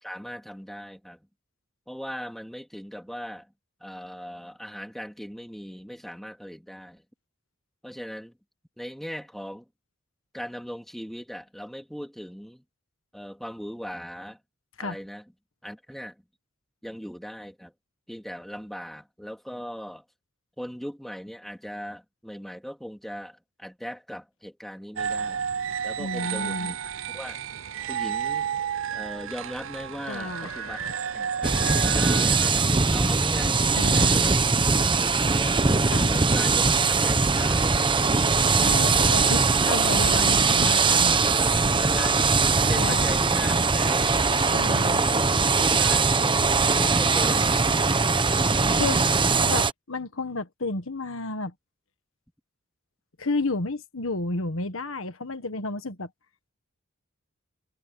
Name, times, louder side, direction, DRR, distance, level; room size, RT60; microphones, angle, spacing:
voice 1, 0.0-1.3 1.9-3.5 3.8-7.0 7.8-8.4 8.8-9.7 10.3-12.6 13.1-14.4 14.8-15.2 15.6-16.2 16.8-17.7 18.1-20.0 20.6-25.4 25.8-26.8 27.1-27.4 27.9-28.5 28.9-34.5 35.0-35.6 36.1-38.1 41.8-42.2 42.5-44.2 44.7-47.7, equal, ahead, 2.8 m, -39 dB
sound 1, 25.0-32.5, right 7 dB, 75° right, 0.6 m, -32 dB
voice 2, 26.0-26.7 30.1-31.0 31.6-31.9 33.7-34.2 35.9-36.1 38.5-41.2 42.7-43.1 44.5-45.0 48.7-49.0 49.4-51.5 53.2-56.1, left 2 dB, 75° left, 1.6 m, -31 dB
sound 2, 31.4-49.7, right 4 dB, 25° right, 1.0 m, -21 dB
head